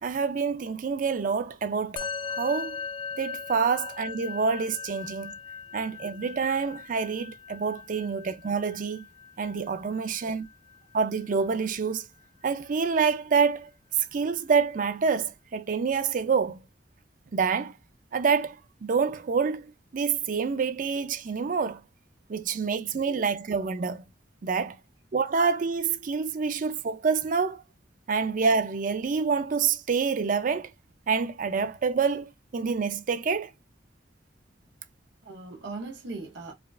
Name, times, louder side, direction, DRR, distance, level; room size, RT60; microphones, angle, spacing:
voice 1, 0.0-2.8 3.2-5.3 5.7-9.1 9.4-10.5 10.9-12.1 12.4-13.7 14.1-16.6 17.3-17.7 18.1-18.6 18.8-19.6 19.9-21.8 22.3-24.0 24.4-24.8 25.1-27.6 28.1-30.7 31.1-33.5, right 5 dB, 45° right, 0.4 m, -27 dB
Musical instrument, 2.0-11.5, left 5 dB, 30° left, 0.3 m, -39 dB
voice 2, 35.2-36.5, right 3 dB, 70° right, 0.8 m, -40 dB
4.9 x 2.3 x 2.3 m
head